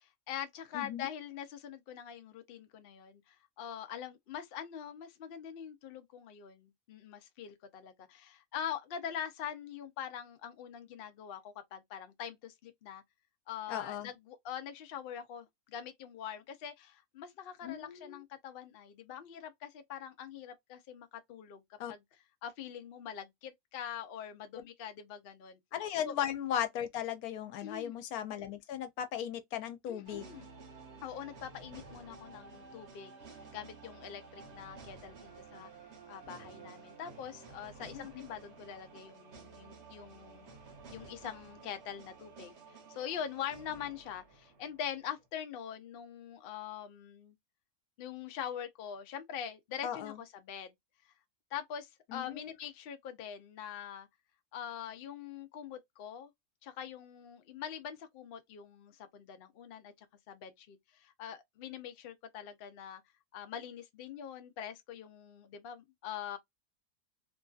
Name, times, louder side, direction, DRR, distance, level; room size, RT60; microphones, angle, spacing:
voice 1, 0.0-13.0 13.5-21.6 21.9-22.0 22.4-25.6 26.0-26.1 27.6-28.0 29.9-30.5 31.0-33.1 33.5-35.7 36.1-40.5 40.9-42.5 42.9-47.4 48.0-50.7 51.5-54.1 54.5-56.3 56.6-59.9 60.3-63.0 63.3-66.4, left 9 dB, 60° left, 0.6 m, -43 dB
voice 2, 0.7-1.1 13.7-14.1 17.6-18.2 21.8-21.9 25.7-30.3 37.9-38.2 49.8-50.2 52.1-52.5, left 10 dB, 90° left, 1.1 m, -37 dB
sound 1, 30.0-45.3, right 4 dB, 55° right, 1.0 m, -53 dB
2.8 x 2.6 x 2.3 m
omnidirectional pair, 1.5 m